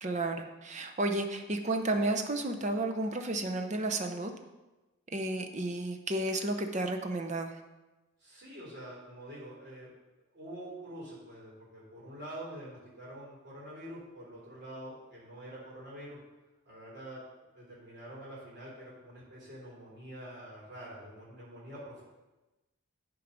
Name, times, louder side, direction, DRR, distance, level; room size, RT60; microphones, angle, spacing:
voice 1, 0.0-4.3 5.1-7.6, right 2 dB, 35° right, 5 dB, 0.6 m, -32 dB
voice 2, 8.2-9.9 10.3-16.2 16.6-17.2 17.5-22.0, right 1 dB, 50° right, -6 dB, 3.3 m, -46 dB
10.0 x 4.6 x 5.2 m, 1.1 s
head